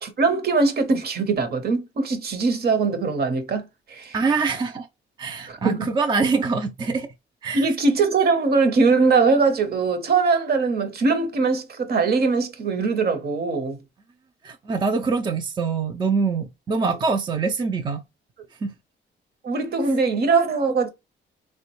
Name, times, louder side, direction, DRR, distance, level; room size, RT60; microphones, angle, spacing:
voice 1, 0.0-3.6 3.9-4.1 5.5-5.9 7.5-13.8 19.4-20.9, right 4 dB, 55° right, 0.8 m, -21 dB
voice 2, 4.1-4.9 5.2-7.1 7.4-7.7 14.4-18.0 18.6-18.7, right 4 dB, 25° right, 0.4 m, -24 dB
3.4 x 2.1 x 2.9 m
cardioid pair, 90°, 20 cm